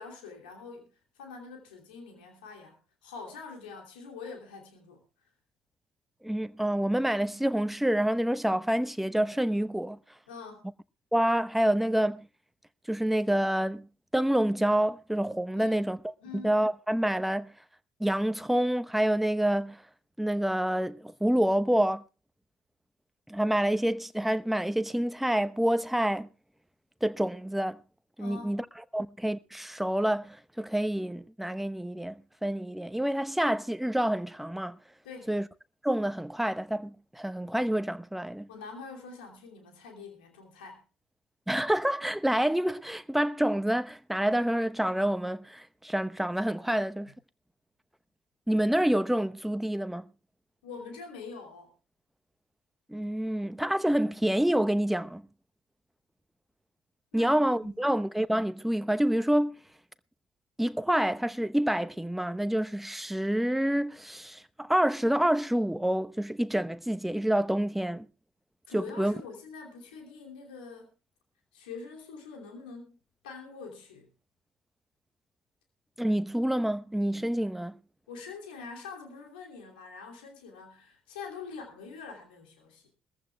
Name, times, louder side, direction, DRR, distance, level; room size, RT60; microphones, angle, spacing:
voice 1, 0.0-5.0 10.3-10.7 15.5-15.9 16.2-16.5 28.2-28.6 35.0-35.4 38.5-40.8 46.8-47.1 50.6-51.7 57.1-58.0 68.7-70.9 71.5-73.0 73.2-74.1 78.1-82.9, left 4 dB, 85° left, 3.0 m, -45 dB
voice 2, 6.2-10.0 11.1-12.3 12.9-13.9 14.1-16.1 16.4-17.5 18.0-19.8 20.2-22.0 23.3-26.3 27.0-27.8 28.2-28.6 28.9-34.8 35.3-35.5 35.8-38.5 41.5-47.1 48.5-50.0 52.9-55.2 57.1-59.6 60.6-68.1 68.7-69.1 76.0-77.8, right 1 dB, 5° right, 0.9 m, -27 dB
22.0 x 14.5 x 2.3 m
hypercardioid pair, 55°, 5 cm